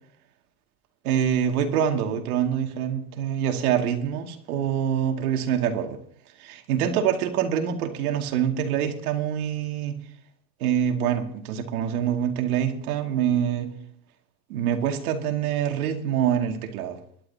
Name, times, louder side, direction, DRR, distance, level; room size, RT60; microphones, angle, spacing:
voice 1, 1.0-6.0 6.4-10.0 10.6-13.7 14.5-17.0, right 9 dB, 70° right, 4 dB, 2.3 m, -25 dB
22.0 x 11.5 x 2.8 m, 0.62 s
supercardioid pair, 180°, 46 cm